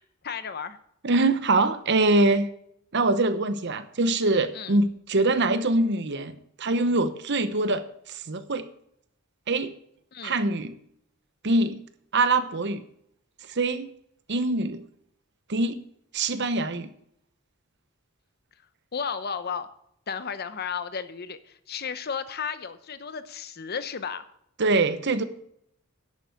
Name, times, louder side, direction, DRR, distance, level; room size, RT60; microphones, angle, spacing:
voice 1, 0.2-0.8 4.5-4.8 10.1-10.4 18.9-19.7 20.1-24.2, left 6 dB, 45° left, 12 dB, 0.8 m, -33 dB
voice 2, 1.0-2.5 2.9-8.7 9.5-9.7 10.2-10.8 11.4-11.8 12.1-12.8 13.5-13.9 14.3-14.8 15.5-15.8 16.1-16.9 24.6-25.2, right 2 dB, 55° right, 11 dB, 0.9 m, -24 dB
11.0 x 8.1 x 6.5 m, 0.70 s
head